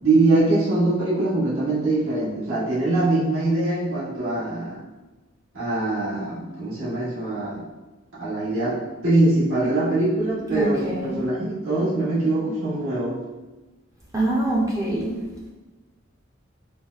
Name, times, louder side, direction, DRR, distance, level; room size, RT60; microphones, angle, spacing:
voice 1, 0.0-4.8 5.5-7.6 8.2-13.2, right 2 dB, 80° right, -9 dB, 1.1 m, -23 dB
voice 2, 10.5-11.2 14.1-15.2, right 1 dB, 15° right, -4 dB, 0.5 m, -24 dB
3.9 x 2.1 x 2.4 m, 1.2 s
head